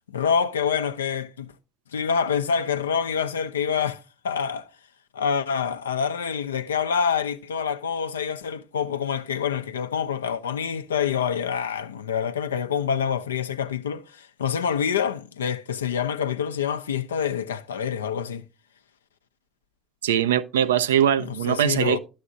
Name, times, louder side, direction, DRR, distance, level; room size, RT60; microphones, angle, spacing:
voice 1, 0.1-1.5 1.9-4.7 5.1-18.4 21.2-22.0, left 7 dB, 85° left, 0.4 m, -26 dB
voice 2, 20.0-22.0, right 10 dB, 80° right, 0.3 m, -21 dB
11.5 x 7.1 x 2.6 m
hypercardioid pair, 60°, 0 cm